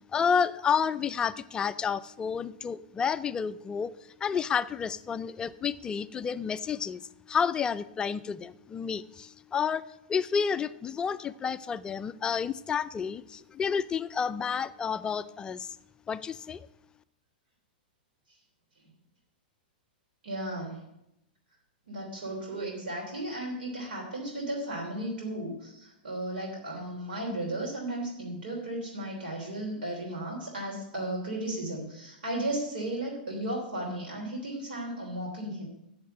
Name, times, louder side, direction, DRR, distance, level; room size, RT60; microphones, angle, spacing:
voice 1, 0.1-3.9 4.2-7.0 7.3-15.8 16.1-16.7, left 6 dB, 15° left, 14 dB, 0.3 m, -30 dB
voice 2, 20.2-20.8 21.9-35.7, right 1 dB, 85° right, -1 dB, 3.4 m, -35 dB
8.4 x 7.3 x 7.6 m, 0.84 s
hypercardioid pair, 140°, 5 cm